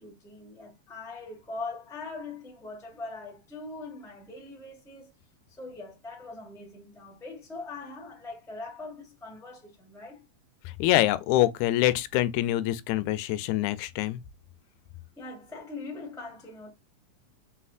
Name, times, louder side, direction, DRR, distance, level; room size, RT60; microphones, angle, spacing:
voice 1, 0.0-5.1 5.5-10.2 15.2-16.7, left 3 dB, 5° left, 0.4 m, -41 dB
voice 2, 10.8-14.2, left 15 dB, 85° left, 1.9 m, -25 dB
4.3 x 4.2 x 2.3 m
omnidirectional pair, 3.4 m